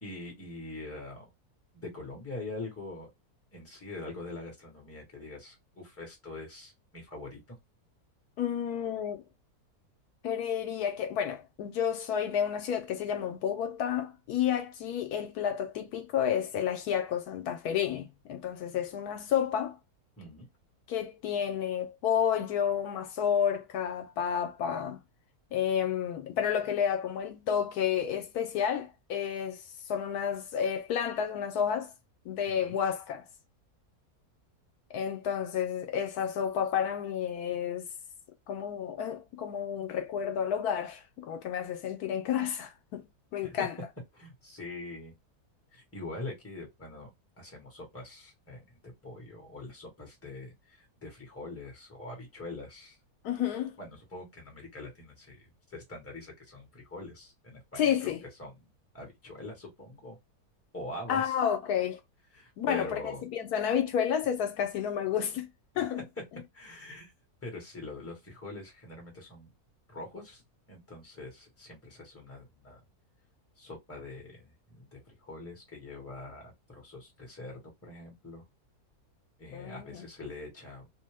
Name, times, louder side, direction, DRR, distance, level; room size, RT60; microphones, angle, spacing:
voice 1, 0.0-1.3 1.7-3.1 3.5-7.4 20.2-20.5 32.5-32.8 43.4-43.6 44.1-45.1 45.7-47.1 47.4-53.0 53.8-55.4 55.7-58.1 58.4-58.6 58.9-60.2 60.7-61.3 62.3-63.2 65.7-65.9 66.5-67.1 67.4-69.5 69.9-70.4 70.7-72.8 73.6-78.4 79.4-80.9, left 2 dB, 10° left, 1.0 m, -44 dB
voice 2, 8.4-9.2 10.2-19.8 20.9-25.0 25.5-29.6 29.9-31.9 32.3-33.2 34.9-37.9 38.5-43.0 43.3-43.7 53.2-53.7 57.8-58.2 61.1-62.0 62.6-65.5 65.8-66.0 79.5-80.0, left 8 dB, 80° left, 1.1 m, -30 dB
2.8 x 2.1 x 3.3 m
omnidirectional pair, 1.7 m